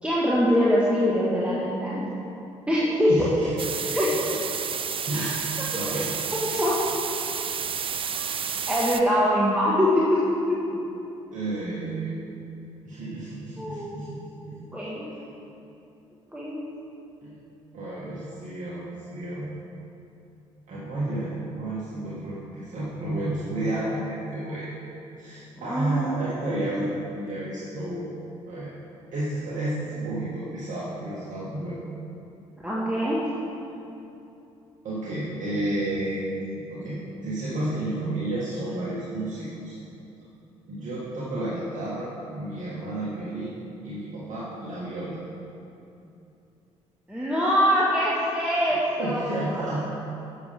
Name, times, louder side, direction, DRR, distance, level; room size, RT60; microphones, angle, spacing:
voice 1, 0.0-2.1 2.7-3.3 3.9-4.1 5.1-6.1 6.4-6.8 8.2-8.4 8.7-9.9 13.6-14.0 14.7-15.1 16.3-16.6 25.6-26.0 32.6-33.2 47.1-49.6, equal, 5° right, -7 dB, 1.7 m, -24 dB
voice 2, 3.2-3.5 3.9-4.0 5.1-6.2 11.3-12.3 12.9-14.3 14.6-14.7 17.2-17.4 17.7-19.5 20.7-24.7 25.2-28.1 28.5-28.7 29.1-31.8 34.8-39.8 40.7-43.5 43.8-45.2 49.0-49.8, right 1 dB, 55° right, -8 dB, 1.7 m, -31 dB
sound 1, 3.6-9.0, right 7 dB, 35° right, 0.5 m, -30 dB
11.5 x 7.0 x 3.6 m, 2.8 s
figure-of-eight pair, 45°, 16 cm